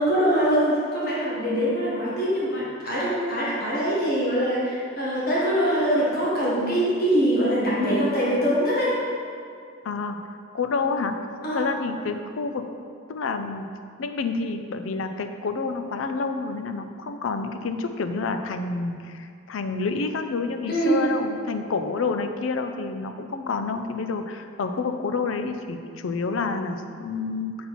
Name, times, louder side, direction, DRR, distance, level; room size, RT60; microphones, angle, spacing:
voice 1, 0.0-8.9 11.4-11.6 20.7-21.0, equal, 55° left, -7 dB, 1.5 m, -23 dB
voice 2, 9.8-10.2 10.5-11.2 11.5-12.7 13.1-13.7 14.0-27.6, left 4 dB, 80° left, 7 dB, 0.5 m, -28 dB
7.0 x 4.2 x 4.2 m, 2.3 s
head